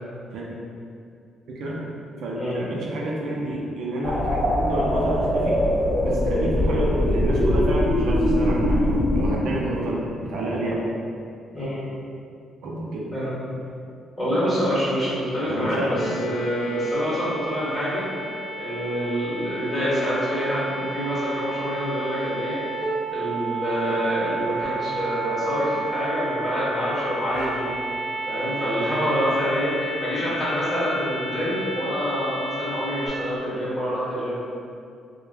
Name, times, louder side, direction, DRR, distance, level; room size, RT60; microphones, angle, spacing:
voice 1, 2.2-5.6 6.0-10.8 12.6-13.1 15.5-15.9, right 1 dB, 75° right, -3 dB, 0.4 m, -29 dB
sound 1, 4.0-9.4, left 1 dB, 40° left, 0.7 m, -22 dB
voice 2, 11.5-11.8 13.1-13.3 14.2-18.1 18.6-22.6 23.1-27.7 28.2-34.3, equal, 5° left, -11 dB, 1.2 m, -26 dB
sound 2, 16.0-33.1, right 2 dB, 75° left, 0.5 m, -32 dB
3.0 x 2.1 x 2.2 m, 2.4 s
cardioid pair, 90°, 0 cm